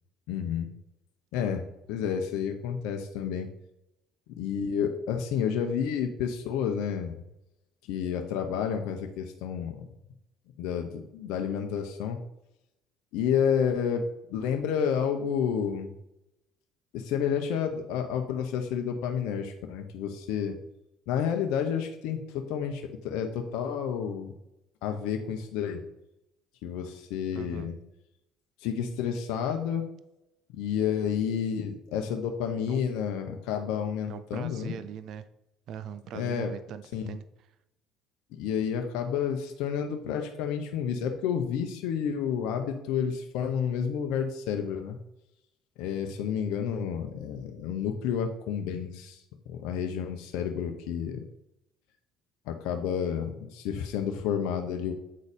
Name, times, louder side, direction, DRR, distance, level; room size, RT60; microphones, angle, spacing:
voice 1, 0.3-0.7 1.3-3.5 4.4-7.2 7.9-9.9 10.6-12.2 13.1-15.9 16.9-20.6 21.1-24.3 24.8-25.8 26.6-27.8 28.6-29.9 30.5-34.8 36.1-36.5 36.9-37.0 38.3-45.0 45.8-49.2 49.5-51.2 52.5-54.9, left 7 dB, 75° left, 4 dB, 0.8 m, -30 dB
voice 2, 27.3-27.7 32.7-32.9 34.1-35.2 35.7-37.2, right 8 dB, 60° right, 12 dB, 0.5 m, -40 dB
8.5 x 4.1 x 5.1 m, 0.86 s
hypercardioid pair, 70°, 0 cm